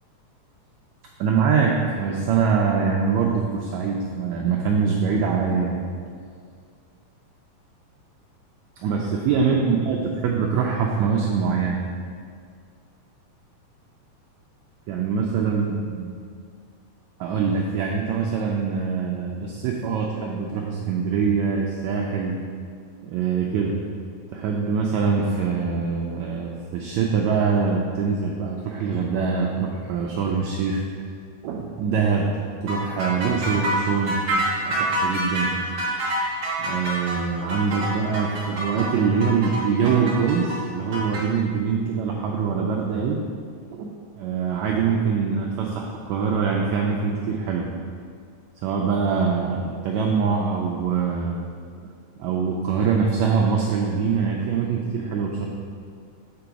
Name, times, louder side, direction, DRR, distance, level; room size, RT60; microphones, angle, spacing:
voice 1, 1.2-5.8 8.8-11.8 14.9-15.7 17.2-22.3 23.0-23.8 24.3-30.8 31.4-32.3 32.6-35.5 36.6-43.2 43.7-47.6 48.6-51.4 51.8-51.9 52.2-55.5, right 5 dB, 85° right, -1 dB, 1.6 m, -24 dB
sound 1, 32.7-41.2, right 1 dB, 50° right, 1.8 m, -27 dB
7.6 x 3.9 x 4.7 m, 2.1 s
omnidirectional pair, 3.8 m